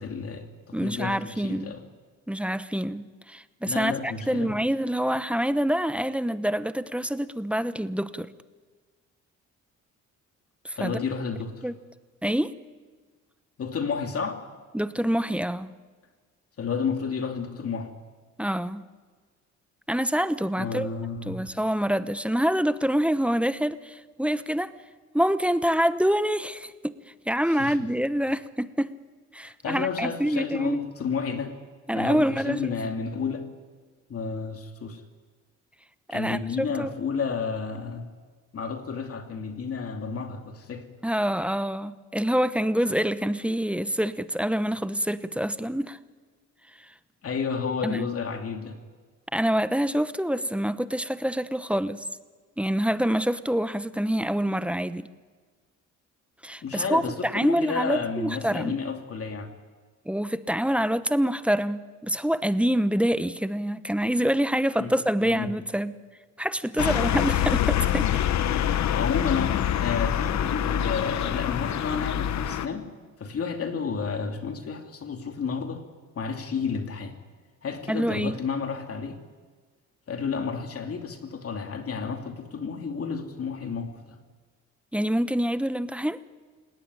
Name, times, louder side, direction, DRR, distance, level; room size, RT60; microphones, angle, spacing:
voice 1, 0.0-1.8 3.6-4.5 10.8-11.6 13.6-14.4 16.6-17.9 20.6-21.5 27.5-27.8 29.4-31.5 31.9-33.5 34.1-35.0 36.1-38.1 38.5-40.8 47.2-48.8 56.6-59.5 64.8-64.9 65.2-65.5 66.8-67.3 68.9-72.9 73.2-75.8 76.1-77.1 77.6-79.2 80.1-84.2, left 5 dB, 50° left, 5 dB, 2.7 m, -31 dB
voice 2, 0.7-1.7 2.3-8.3 10.6-11.0 11.6-11.8 12.2-12.5 14.7-15.7 18.4-18.8 19.9-20.9 21.3-24.7 25.1-27.0 27.3-28.9 29.3-30.8 31.9-32.7 36.1-36.9 41.0-46.0 47.8-48.1 49.3-52.0 52.6-55.1 56.4-58.7 60.1-66.0 66.4-68.1 77.9-78.3 84.9-86.2, equal, 5° right, 13 dB, 0.9 m, -26 dB
sound 1, 66.8-72.7, left 10 dB, 65° left, 1.1 m, -25 dB
28.5 x 18.0 x 9.8 m, 1.5 s
cardioid pair, 90°, 30 cm